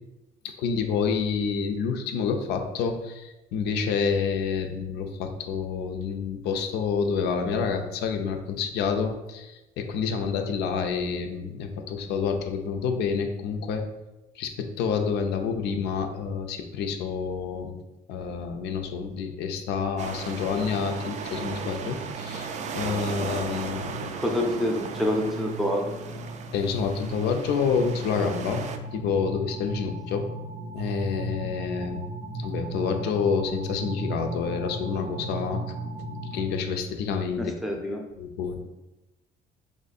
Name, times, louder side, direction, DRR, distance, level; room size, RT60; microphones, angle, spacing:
voice 1, 0.4-13.8 14.3-17.7 18.1-24.1 26.5-28.6 28.9-30.3 30.7-32.0 32.4-35.6 36.3-37.5 38.2-38.7, left 6 dB, 80° left, 5 dB, 0.5 m, -28 dB
sound 1, 20.0-28.8, right 6 dB, 45° right, 0.4 m, -36 dB
sound 2, 20.4-36.5, right 2 dB, 80° right, 0.7 m, -37 dB
voice 2, 24.2-25.8 37.4-38.0, equal, ahead, 0 dB, 0.6 m, -27 dB
3.1 x 2.6 x 4.1 m, 1.0 s
cardioid pair, 110°, 17 cm